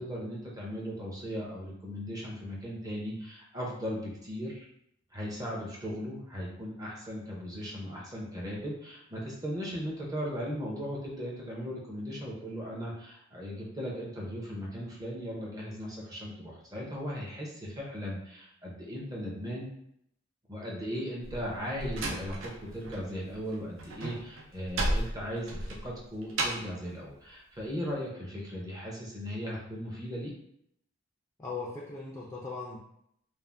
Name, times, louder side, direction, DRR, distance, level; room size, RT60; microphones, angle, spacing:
voice 1, 0.0-4.6 5.1-19.7 20.5-30.3, equal, 20° right, -3 dB, 0.6 m, -37 dB
Slam, 21.2-23.0 23.3-26.8, right 1 dB, 65° right, 0.5 m, -34 dB
voice 2, 31.4-32.8, left 4 dB, 15° left, -4 dB, 0.3 m, -38 dB
2.5 x 2.1 x 3.2 m, 0.74 s
head